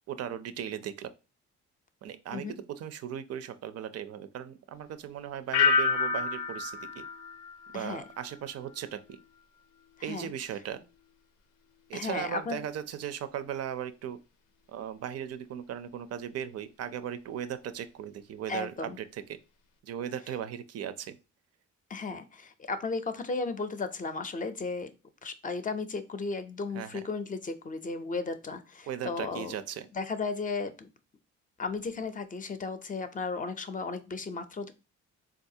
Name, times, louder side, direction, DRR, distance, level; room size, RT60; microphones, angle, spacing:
voice 1, 0.1-1.1 2.0-7.1 7.7-9.2 10.0-10.8 11.9-14.2 14.7-19.4 19.8-21.2 26.7-27.0 28.9-29.9, right 9 dB, 55° right, 11 dB, 0.5 m, -37 dB
sound 1, 5.5-8.4 8.7-9.2, left 4 dB, 80° left, 0.5 m, -29 dB
voice 2, 10.0-10.3 11.9-12.6 18.5-19.0 21.9-24.9 25.2-29.5 29.9-30.9 31.6-34.7, left 4 dB, 25° left, 9 dB, 0.5 m, -35 dB
3.9 x 2.4 x 2.7 m, 0.30 s
cardioid pair, 90°, 30 cm